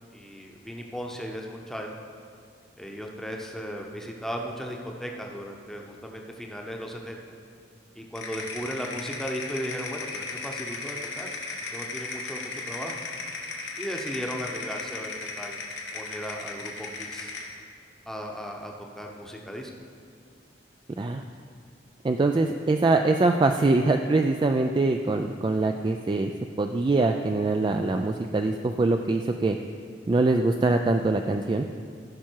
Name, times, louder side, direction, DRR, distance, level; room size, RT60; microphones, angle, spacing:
voice 1, 0.1-1.9 2.8-7.2 7.9-11.3 11.7-13.0 13.8-15.6 15.9-17.3 18.1-19.7, equal, ahead, 0 dB, 0.9 m, -36 dB
sound 1, 8.2-17.5, left 3 dB, 80° left, 1.5 m, -36 dB
voice 2, 22.0-26.3 26.6-29.6 30.1-31.7, right 3 dB, 25° right, 4 dB, 0.3 m, -23 dB
15.0 x 5.9 x 4.6 m, 2.2 s
head